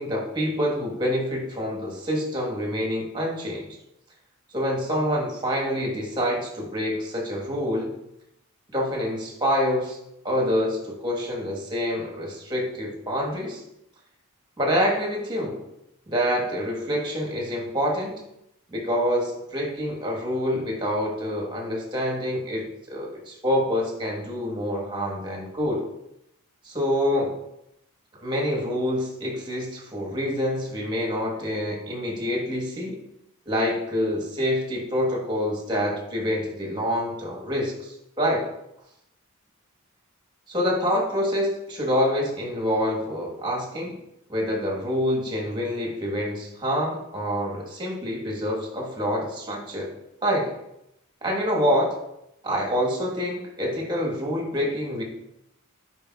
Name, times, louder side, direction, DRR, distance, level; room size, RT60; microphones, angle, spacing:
voice 1, 0.0-3.8 4.5-7.9 8.7-10.0 10.2-13.6 14.6-15.6 16.1-18.2 18.7-25.8 26.6-27.4 28.2-33.0 33.5-38.5 40.5-43.9 44.3-49.9 50.2-50.5 51.2-51.9 52.4-55.0, equal, 20° right, 0 dB, 1.3 m, -26 dB
9.7 x 4.6 x 2.4 m, 0.82 s
head